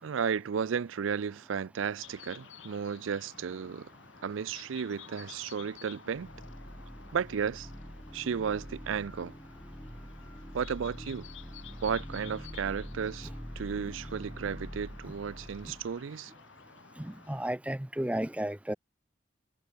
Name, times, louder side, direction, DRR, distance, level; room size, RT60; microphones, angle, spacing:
voice 1, 0.0-3.9 4.2-6.3 7.1-7.7 8.1-9.3 10.5-11.3 11.8-16.3, right 6 dB, 85° right, 0.4 m, -34 dB
sound 1, 2.0-17.5, left 6 dB, 85° left, 4.7 m, -53 dB
sound 2, 6.1-16.0, equal, 10° left, 3.9 m, -45 dB
voice 2, 17.0-18.8, right 1 dB, 5° right, 0.6 m, -33 dB
head